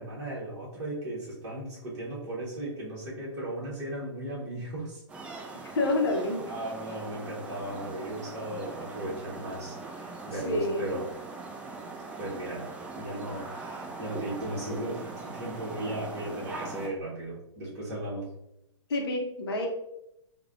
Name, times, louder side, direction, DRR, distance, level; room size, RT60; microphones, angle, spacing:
voice 1, 0.0-5.0 6.4-11.1 12.2-12.7 12.9-18.3, right 1 dB, 30° right, -7 dB, 1.1 m, -36 dB
sound 1, 5.1-16.9, right 3 dB, 5° right, 0.4 m, -41 dB
voice 2, 5.7-6.4 10.4-10.9 18.9-19.7, left 2 dB, 55° left, 2 dB, 0.7 m, -28 dB
4.7 x 2.2 x 2.3 m, 0.83 s
figure-of-eight pair, 115°, 15 cm